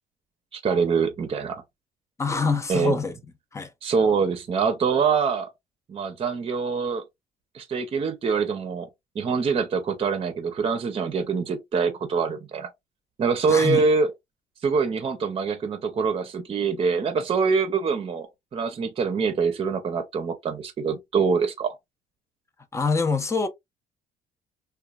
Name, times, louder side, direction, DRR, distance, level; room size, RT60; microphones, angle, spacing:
voice 1, 0.5-1.6 2.7-3.0 3.8-5.5 5.9-7.0 7.5-8.9 9.1-12.7 13.2-14.1 14.6-21.7, right 5 dB, 35° right, 0.6 m, -24 dB
voice 2, 2.2-3.2 3.5-3.7 13.5-13.9 22.7-23.5, left 4 dB, 15° left, 0.5 m, -25 dB
3.0 x 2.2 x 2.3 m
cardioid pair, 110°, 17 cm